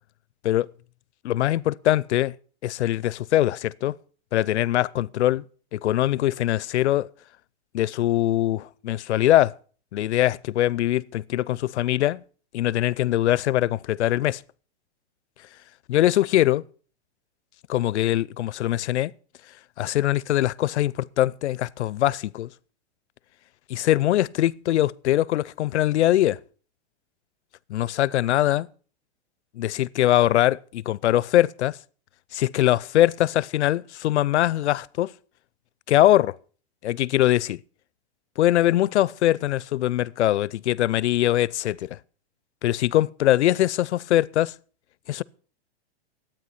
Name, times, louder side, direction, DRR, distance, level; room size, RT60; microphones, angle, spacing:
voice 1, 1.2-2.3 2.6-4.0 4.3-5.4 5.7-7.1 7.7-9.5 9.9-12.2 12.5-14.4 15.9-16.6 17.7-19.1 19.8-22.5 23.7-26.4 27.7-28.7 29.5-31.8 32.3-35.1 35.9-36.4 36.8-37.6 38.4-42.0 42.6-44.5 45.1-45.2, left 14 dB, 90° left, 0.6 m, -22 dB
12.5 x 9.0 x 5.7 m
supercardioid pair, 180°, 33 cm